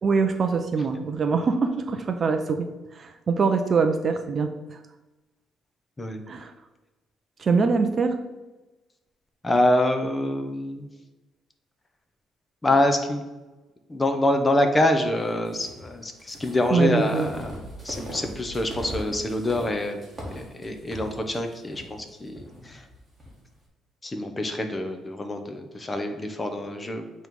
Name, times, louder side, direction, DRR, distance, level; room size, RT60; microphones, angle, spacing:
voice 1, 0.0-4.8 6.3-6.5 7.4-8.2 16.7-17.3, right 4 dB, 35° right, 7 dB, 0.5 m, -24 dB
voice 2, 9.4-10.9 12.6-13.2 13.9-17.6 17.8-20.0 20.3-22.8 24.0-27.0, left 1 dB, 15° left, 6 dB, 0.7 m, -25 dB
sound 1, 15.4-23.3, equal, 15° right, 1.6 m, -40 dB
8.0 x 3.1 x 5.2 m, 1.1 s
cardioid pair, 155°, 0 cm